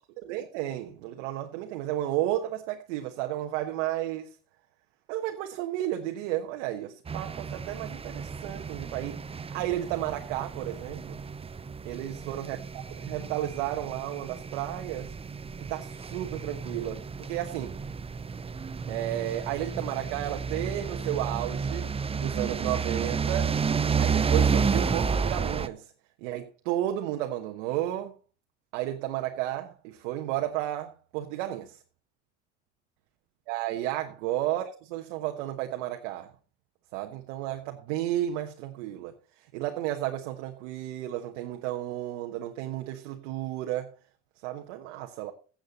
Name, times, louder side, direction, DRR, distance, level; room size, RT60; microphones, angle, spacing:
voice 1, 0.2-4.3 5.1-9.2 9.5-11.2 11.8-15.1 15.7-17.7 18.9-21.9 22.2-23.5 24.0-25.9 26.2-28.1 28.7-31.8 33.5-36.3 36.9-39.1 39.5-43.9 44.4-45.3, right 13 dB, 80° right, 1.3 m, -32 dB
sound 1, 7.1-25.7, right 5 dB, 15° right, 0.6 m, -31 dB
15.5 x 7.9 x 4.1 m
hypercardioid pair, 75°, 36 cm